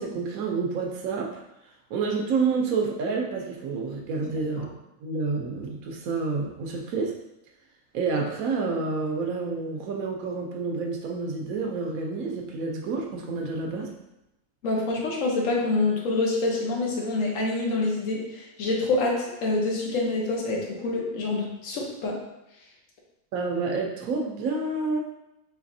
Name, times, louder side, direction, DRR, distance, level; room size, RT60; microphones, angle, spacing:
voice 1, 0.0-1.4 1.9-4.7 5.0-7.1 7.9-13.9 23.3-25.0, right 4 dB, 80° right, 1 dB, 1.2 m, -29 dB
voice 2, 14.6-22.2, left 2 dB, 70° left, -1 dB, 1.2 m, -26 dB
4.9 x 3.3 x 2.6 m, 0.91 s
omnidirectional pair, 1.4 m